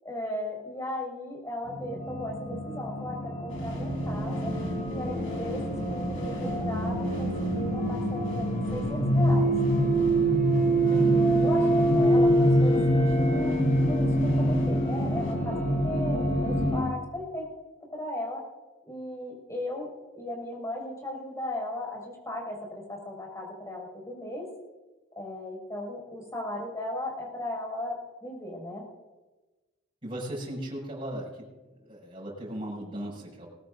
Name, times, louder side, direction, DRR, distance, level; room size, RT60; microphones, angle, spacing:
voice 1, 0.0-4.5 4.9-5.6 5.9-9.5 10.9-13.5 13.9-17.5 17.9-18.4 18.9-24.5 25.2-27.9 28.2-28.8, left 1 dB, 15° left, -1 dB, 6.2 m, -36 dB
sound 1, 1.7-16.8, right 1 dB, 40° left, 4.8 m, -25 dB
sound 2, 3.5-15.4, left 1 dB, 80° left, 4.0 m, -42 dB
voice 2, 10.8-11.2 30.0-31.5 31.8-33.5, right 1 dB, 30° right, -6 dB, 6.4 m, -37 dB
21.0 x 19.0 x 2.7 m, 1.2 s
head